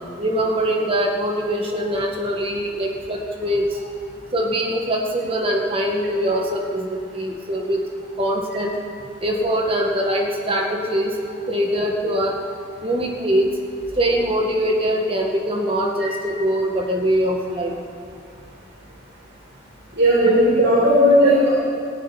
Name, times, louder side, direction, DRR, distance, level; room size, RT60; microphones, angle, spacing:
voice 1, 0.2-3.7 4.3-7.8 8.2-8.7 9.2-11.1 11.5-12.4 12.8-13.5 14.0-17.7, equal, 25° right, 1 dB, 1.8 m, -22 dB
voice 2, 20.0-21.5, equal, 60° right, -7 dB, 5.7 m, -15 dB
19.0 x 14.5 x 9.9 m, 2.4 s
head